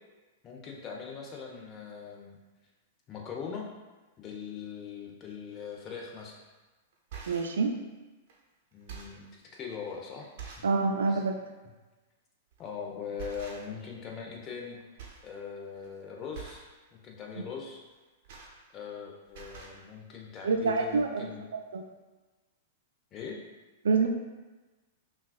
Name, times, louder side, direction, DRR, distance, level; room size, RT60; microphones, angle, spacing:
voice 1, 0.4-2.4 3.1-3.7 4.2-6.4 8.7-9.2 9.5-10.7 11.1-11.2 12.6-14.8 15.2-16.7 16.9-17.8 18.7-21.4 23.1-23.4, left 6 dB, 30° left, -1 dB, 0.8 m, -41 dB
sound 1, 6.2-6.4 6.9-7.6 8.3-8.4 8.7-9.3 9.9-10.0 10.4-10.8 11.2-11.3 12.5-12.7 13.2-13.9 14.2-14.7 15.0-15.3 15.6-15.9 16.3-16.7 17.9-19.0 19.3-19.8 20.6-20.7 20.9-21.0, right 6 dB, 55° right, 0.8 m, -46 dB
voice 2, 7.3-7.8 10.6-11.4 20.4-21.3 21.7-21.8 23.8-24.1, right 4 dB, 70° right, 3 dB, 0.4 m, -26 dB
5.5 x 2.5 x 2.4 m, 1.2 s
figure-of-eight pair, 100°, 0 cm